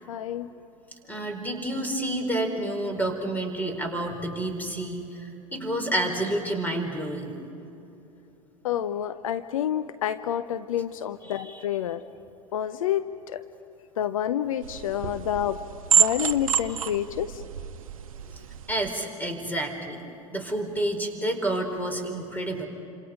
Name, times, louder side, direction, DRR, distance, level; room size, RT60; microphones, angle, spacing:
voice 1, 0.1-0.5 8.6-12.0 12.5-13.1 13.3-13.4 14.0-15.6 16.0-17.4, left 10 dB, 70° left, 11 dB, 0.8 m, -28 dB
voice 2, 1.1-7.3 11.3-11.6 15.0-15.2 18.7-20.0 20.3-22.7, right 1 dB, 10° left, 5 dB, 4.7 m, -29 dB
sound 1, 14.6-18.9, right 8 dB, 75° right, 0.9 m, -27 dB
28.5 x 26.5 x 5.2 m, 2.9 s
figure-of-eight pair, 80°, 18 cm